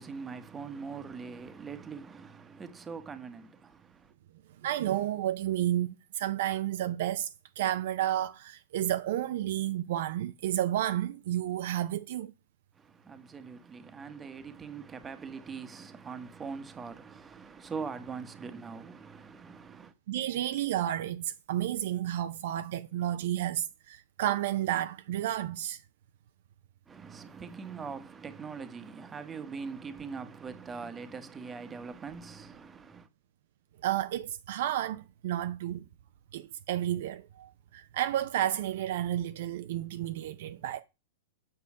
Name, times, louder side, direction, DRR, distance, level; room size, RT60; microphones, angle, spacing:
voice 1, 0.0-4.1 12.7-19.9 26.9-33.1, right 5 dB, 20° right, 1.1 m, -42 dB
voice 2, 4.6-12.3 20.1-25.8 33.8-35.8 36.3-40.8, right 12 dB, 60° right, 0.6 m, -31 dB
7.1 x 6.7 x 4.8 m
hypercardioid pair, 110°, 0 cm